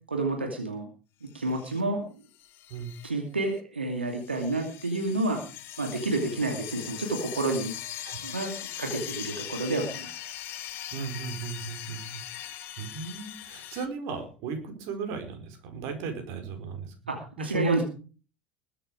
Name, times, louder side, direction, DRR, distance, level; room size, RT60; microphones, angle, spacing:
voice 1, 0.1-0.9 1.2-2.0 3.0-5.4 5.8-7.7 8.2-10.2 17.1-17.8, right 2 dB, 85° right, 3 dB, 2.7 m, -29 dB
sound 1, 1.4-1.8 2.3-3.1 3.4-3.6 4.1-13.9, left 12 dB, 45° left, 1.9 m, -40 dB
voice 2, 10.9-12.5 12.8-16.9 17.4-17.7, right 5 dB, 55° right, 6 dB, 4.9 m, -36 dB
21.0 x 8.8 x 5.0 m, 0.37 s
figure-of-eight pair, 75°, 6 cm